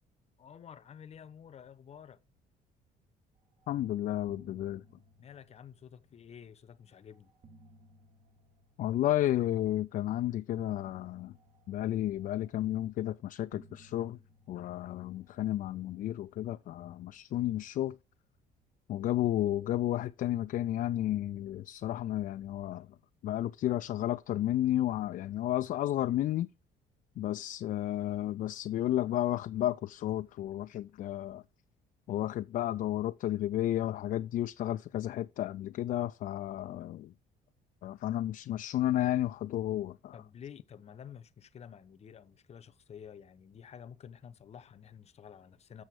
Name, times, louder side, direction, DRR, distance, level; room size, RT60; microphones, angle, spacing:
voice 1, 0.4-2.2 5.2-7.3 40.1-45.8, left 8 dB, 40° left, 0.9 m, -50 dB
sound 1, 3.6-6.4 7.1-9.6 10.6-13.0 13.5-16.1, right 1 dB, 50° right, 1.8 m, -61 dB
voice 2, 3.7-4.8 8.8-11.3 11.7-14.2 14.5-18.0 18.9-22.9 23.2-26.5 27.2-31.4 32.1-37.1 37.8-40.1, left 13 dB, 55° left, 0.4 m, -32 dB
7.7 x 6.4 x 4.8 m
cardioid pair, 110°, 17 cm